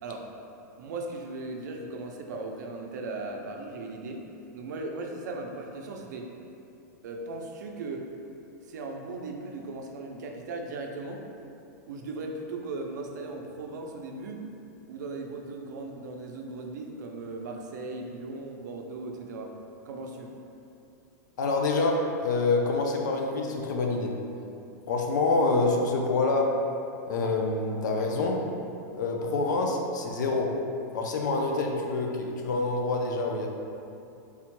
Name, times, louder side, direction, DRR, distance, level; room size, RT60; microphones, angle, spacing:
voice 1, 0.8-4.3 4.5-6.3 7.0-8.1 8.6-11.2 11.9-14.4 14.9-19.5 19.9-20.4, right 2 dB, 75° right, 2 dB, 0.4 m, -37 dB
voice 2, 21.4-24.1 24.9-26.6 27.1-28.5 28.9-30.6 30.9-33.5, left 3 dB, 90° left, 1 dB, 0.4 m, -26 dB
3.5 x 2.1 x 2.9 m, 2.7 s
supercardioid pair, 175°, 10 cm